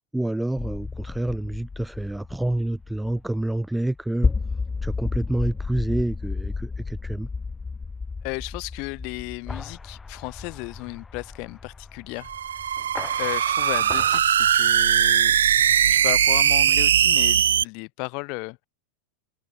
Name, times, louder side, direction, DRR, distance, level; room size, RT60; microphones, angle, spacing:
voice 1, 0.0-4.3 4.8-7.3, right 1 dB, 5° right, 0.6 m, -28 dB
sound 1, 0.6-14.2, left 4 dB, 15° left, 1.0 m, -33 dB
voice 2, 8.2-12.6 13.2-15.4 15.9-18.7, left 33 dB, 45° left, 3.6 m, -34 dB
sound 2, 12.2-17.6, right 9 dB, 65° right, 0.3 m, -20 dB
open air
figure-of-eight pair, 90°, 0 cm